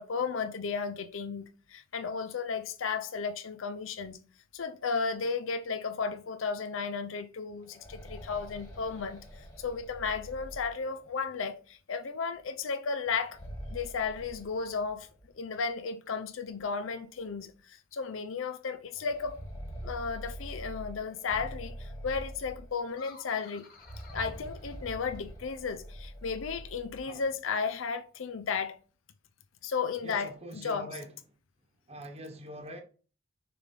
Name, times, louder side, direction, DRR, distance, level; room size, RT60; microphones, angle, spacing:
voice 1, 0.0-4.2 4.5-13.4 13.7-15.1 15.3-19.4 19.8-23.7 24.1-28.8 29.6-30.9, left 5 dB, 85° left, 0.6 m, -34 dB
sound 1, 7.5-11.3 13.1-15.3 15.6-15.7 16.6-16.7 17.1-17.3 18.9-23.1 23.7-27.1, equal, 20° left, 1.7 m, -45 dB
sound 2, 22.9-25.4, left 5 dB, 45° left, 1.6 m, -54 dB
voice 2, 30.0-31.1 31.9-32.8, right 1 dB, 30° right, 1.0 m, -43 dB
6.8 x 3.4 x 5.2 m
head